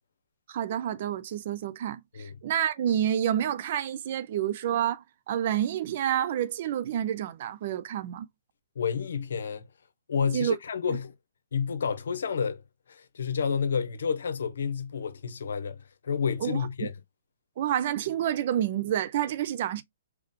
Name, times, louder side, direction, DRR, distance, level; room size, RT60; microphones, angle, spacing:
voice 1, 0.5-8.3 10.3-10.5 10.9-11.0 16.4-16.7 17.6-19.8, right 10 dB, 50° right, 0.5 m, -29 dB
voice 2, 8.8-9.7 10.1-11.1 11.5-12.6 12.9-16.9, left 6 dB, 70° left, 0.9 m, -30 dB
3.6 x 3.0 x 3.6 m
hypercardioid pair, 135°, 0 cm